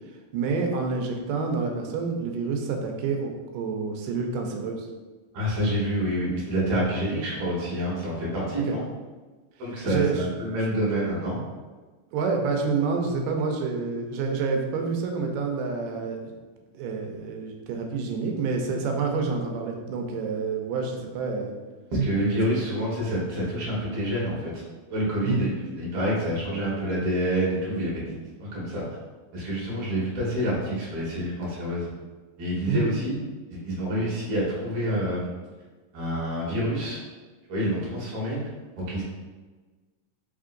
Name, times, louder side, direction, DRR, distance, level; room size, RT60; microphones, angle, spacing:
voice 1, 0.3-4.9 9.8-10.3 12.1-16.3 16.7-21.5 25.2-25.4 32.7-32.9, right 4 dB, 85° right, 2 dB, 2.2 m, -28 dB
voice 2, 5.3-8.8 9.6-11.4 21.9-24.5 24.9-25.5 25.8-28.8 29.3-31.9 32.4-33.1 33.5-35.3 35.9-37.0 37.5-38.5 38.8-39.0, equal, 60° right, -6 dB, 2.1 m, -27 dB
5.1 x 3.7 x 2.5 m, 1.3 s
omnidirectional pair, 3.7 m